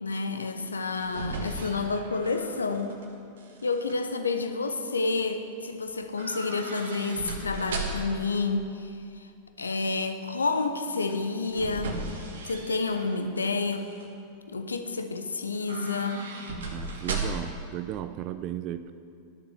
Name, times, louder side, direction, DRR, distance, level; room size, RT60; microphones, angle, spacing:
voice 1, 0.0-2.9 3.6-9.3 9.6-12.0 12.4-13.9 14.5-16.2, left 3 dB, 75° left, 7 dB, 0.8 m, -29 dB
sound 1, 0.7-3.1 3.4-3.9 6.1-8.3 11.0-13.2 13.6-14.1 15.5-17.6 17.9-18.0, right 3 dB, 65° right, 1.4 m, -36 dB
voice 2, 16.7-18.9, right 12 dB, 40° right, 12 dB, 0.4 m, -35 dB
11.5 x 7.0 x 6.6 m, 2.4 s
figure-of-eight pair, 90°, 0 cm